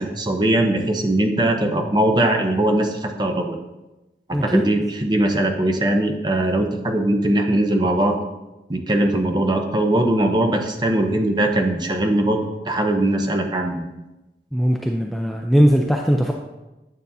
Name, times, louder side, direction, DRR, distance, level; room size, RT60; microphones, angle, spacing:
voice 1, 0.0-3.6 4.3-8.2 8.7-13.9, right 1 dB, 25° right, 3 dB, 0.7 m, -20 dB
voice 2, 4.3-4.6 14.5-16.3, equal, ahead, 1 dB, 0.4 m, -19 dB
9.2 x 7.1 x 2.7 m, 1.0 s
head